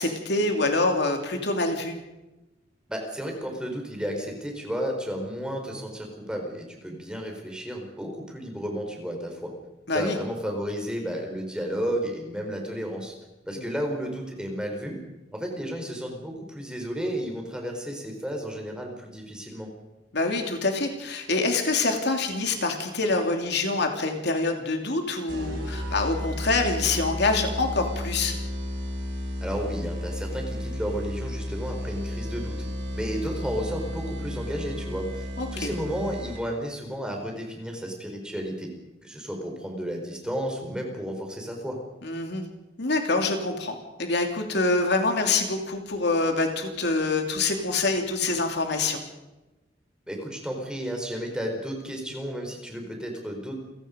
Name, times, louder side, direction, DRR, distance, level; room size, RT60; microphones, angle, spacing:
voice 1, 0.0-2.0 9.9-10.2 13.5-13.6 20.1-28.4 35.4-35.7 42.0-42.4 42.8-49.0, left 3 dB, 60° left, 4 dB, 2.9 m, -26 dB
voice 2, 2.9-9.5 9.9-13.2 13.5-15.0 15.3-19.7 29.4-32.6 32.9-38.7 39.0-41.8 50.1-53.6, equal, 5° right, 2 dB, 4.4 m, -32 dB
sound 1, 25.3-36.7, equal, 65° right, 4.5 m, -33 dB
29.0 x 17.0 x 5.2 m, 1.0 s
head